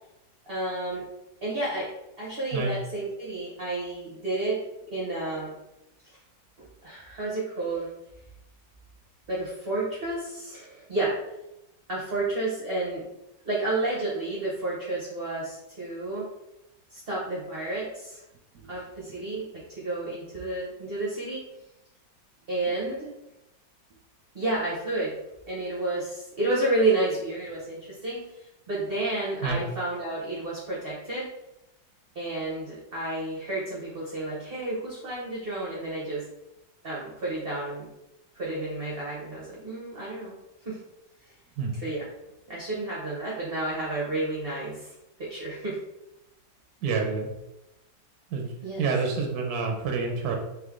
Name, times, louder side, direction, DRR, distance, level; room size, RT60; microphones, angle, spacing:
voice 1, 0.5-1.1 1.4-4.6 4.9-5.5 6.6-7.9 9.3-11.2 11.9-13.0 13.4-16.3 16.9-18.2 18.7-21.4 22.5-23.1 24.3-25.2 25.5-28.3 28.7-31.3 32.1-36.3 36.8-37.9 38.3-40.3 40.6-40.8 41.8-42.0 42.5-44.9 45.2-45.8 48.6-48.8, right 2 dB, 40° right, -6 dB, 0.8 m, -31 dB
voice 2, 46.8-47.3 48.3-50.4, right 4 dB, 65° right, 2 dB, 1.0 m, -28 dB
3.6 x 3.2 x 3.6 m, 0.90 s
omnidirectional pair, 2.1 m